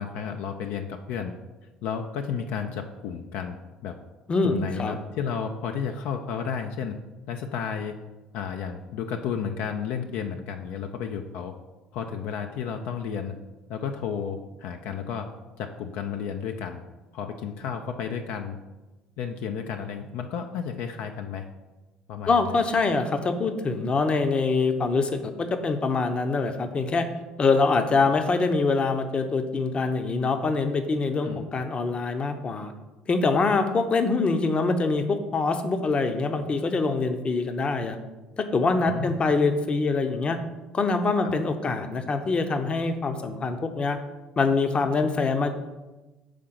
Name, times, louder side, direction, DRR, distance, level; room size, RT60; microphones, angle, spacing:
voice 1, 0.0-1.3 1.8-3.6 3.8-4.0 4.4-7.0 7.3-8.0 8.3-11.5 11.9-13.3 13.7-15.3 15.6-16.8 17.1-18.6 19.2-21.5 22.1-22.4 31.2-31.4 38.9-39.2 41.2-41.3, left 7 dB, 70° left, 5 dB, 0.4 m, -32 dB
voice 2, 4.3-5.0 22.3-27.1 27.4-32.7 33.1-38.0 38.4-40.4 40.7-44.0 44.4-45.5, left 3 dB, 35° left, 8 dB, 0.7 m, -24 dB
5.0 x 3.8 x 5.8 m, 1.1 s
hypercardioid pair, 70°, 3 cm